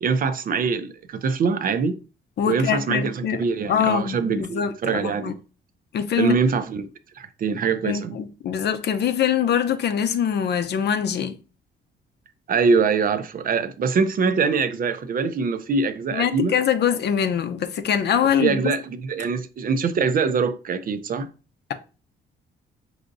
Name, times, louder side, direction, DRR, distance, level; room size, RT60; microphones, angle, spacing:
voice 1, 0.0-2.0 2.4-5.4 6.2-6.9 7.2-8.2 12.5-16.6 18.4-21.3, right 5 dB, 45° right, 0.4 m, -23 dB
voice 2, 2.4-3.4 3.7-5.3 5.9-6.3 7.8-11.4 16.1-18.6, left 8 dB, 60° left, 0.6 m, -23 dB
4.8 x 2.7 x 2.6 m
cardioid pair, 90°, 20 cm